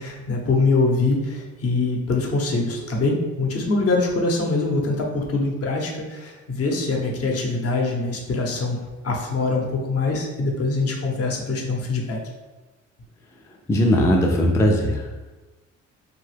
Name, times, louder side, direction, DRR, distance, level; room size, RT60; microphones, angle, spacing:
voice 1, 0.0-8.8 9.0-12.2, left 3 dB, 50° left, 0 dB, 0.8 m, -23 dB
voice 2, 13.7-15.1, equal, 10° left, -1 dB, 0.3 m, -19 dB
2.8 x 2.2 x 3.2 m, 1.2 s
cardioid pair, 90°, 30 cm